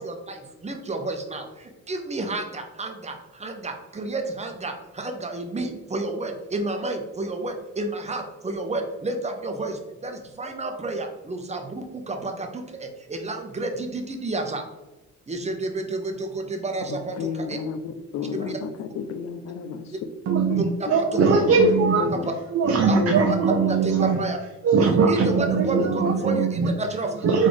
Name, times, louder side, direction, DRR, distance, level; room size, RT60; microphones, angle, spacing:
voice 1, 0.0-14.6 15.3-17.6 18.3-18.6 20.8-21.3 22.1-22.3 22.9-23.0 23.7-24.4 24.8-27.3, right 2 dB, 20° right, 4 dB, 0.8 m, -30 dB
voice 2, 16.9-19.8 20.4-20.6 21.1-21.5 21.8-22.3 23.0-23.1 25.8-25.9, left 7 dB, 60° left, 9 dB, 0.6 m, -32 dB
voice 3, 20.3-22.1 22.5-24.2 24.6-26.7 27.2-27.5, right 5 dB, 55° right, 3 dB, 0.6 m, -20 dB
4.0 x 3.6 x 3.3 m, 1.1 s
cardioid pair, 90°, 30 cm